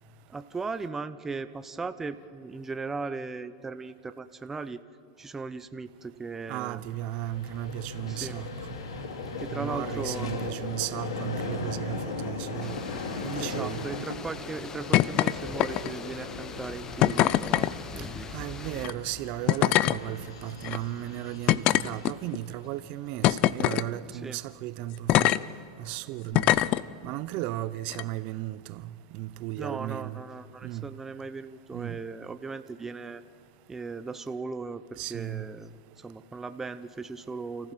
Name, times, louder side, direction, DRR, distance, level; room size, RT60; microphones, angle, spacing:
voice 1, 0.3-4.8 5.2-6.8 8.1-8.4 9.4-10.4 13.4-18.3 24.1-24.4 29.6-33.2 33.7-37.7, right 4 dB, 15° right, 0.7 m, -38 dB
voice 2, 6.5-8.5 9.5-12.8 13.2-13.8 18.3-25.3 25.8-26.5 27.0-28.8 29.1-30.2 30.6-30.8 31.7-32.0 35.0-35.4, right 15 dB, 50° right, 0.7 m, -35 dB
Vehicle, 6.9-23.2, left 3 dB, 90° left, 2.5 m, -38 dB
sound 1, 12.6-18.9, left 5 dB, 20° left, 0.8 m, -43 dB
sound 2, 14.9-15.3 15.6-16.0 17.0-17.7 18.8-18.9 19.5-20.0 20.6-20.8 21.5-22.4 23.2-23.9 25.1-25.4 26.3-26.8 27.9-28.0, left 15 dB, 45° left, 0.5 m, -22 dB
29.0 x 15.0 x 7.5 m
supercardioid pair, 125°, 3 cm